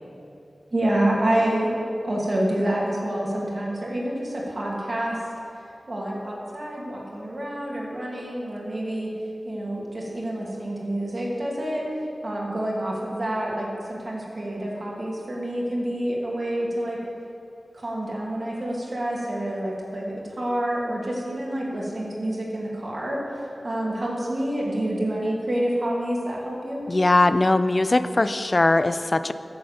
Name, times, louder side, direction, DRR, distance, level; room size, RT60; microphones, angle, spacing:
voice 1, 0.7-1.7 2.0-5.2 5.9-9.1 9.4-11.8 12.2-17.0 17.7-23.2 23.6-26.9, right 1 dB, 55° right, -4 dB, 2.3 m, -27 dB
voice 2, 26.9-29.3, left 2 dB, 45° left, 12 dB, 0.4 m, -20 dB
9.9 x 6.5 x 7.2 m, 2.7 s
cardioid pair, 45°, 0 cm